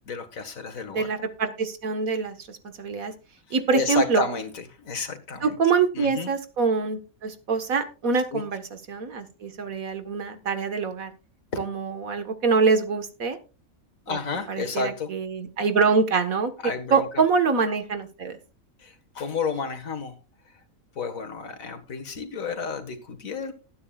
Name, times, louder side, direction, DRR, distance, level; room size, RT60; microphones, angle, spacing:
voice 1, 0.0-1.1 3.5-5.6 5.9-6.3 8.3-8.4 11.5-11.6 14.1-15.1 16.6-17.1 18.8-20.1 21.0-23.5, left 4 dB, 75° left, 8 dB, 2.0 m, -31 dB
voice 2, 0.9-3.1 3.5-4.2 5.4-8.6 8.9-11.1 11.6-13.4 14.1-14.2 14.5-16.5 16.9-18.4, right 5 dB, 80° right, 9 dB, 1.9 m, -25 dB
20.0 x 9.5 x 2.4 m, 0.32 s
omnidirectional pair, 1.4 m